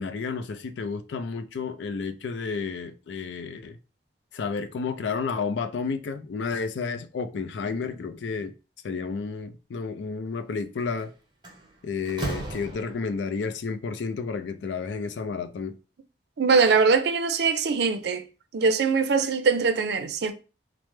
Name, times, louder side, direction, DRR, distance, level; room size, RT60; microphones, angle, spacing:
voice 1, 0.0-3.8 4.3-8.5 8.8-11.1 11.8-15.8, left 5 dB, 85° left, 0.4 m, -31 dB
Slam, 10.8-11.0 11.4-13.3, right 2 dB, 25° right, 0.7 m, -35 dB
voice 2, 16.4-18.2 18.5-20.3, right 5 dB, 65° right, 0.4 m, -22 dB
3.1 x 2.0 x 3.1 m
head